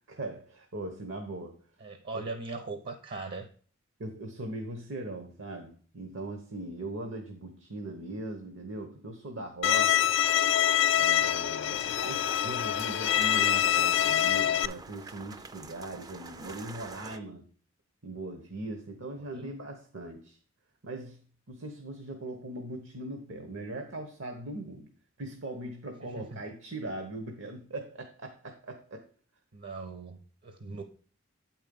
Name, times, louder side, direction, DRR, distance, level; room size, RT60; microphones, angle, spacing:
voice 1, 0.1-1.5 2.1-2.3 4.0-10.0 10.9-17.4 18.0-20.4 20.8-21.2 21.5-24.9 25.2-29.1, right 2 dB, 75° right, 4 dB, 1.1 m, -40 dB
voice 2, 1.8-3.5 19.2-19.6 26.0-26.4 29.5-30.8, right 3 dB, 55° right, 7 dB, 0.7 m, -40 dB
Bowed string instrument, 9.6-14.7, left 10 dB, 65° left, 0.3 m, -25 dB
sound 1, 11.7-17.2, right 3 dB, 20° right, 0.4 m, -46 dB
8.7 x 4.4 x 5.3 m, 0.42 s
head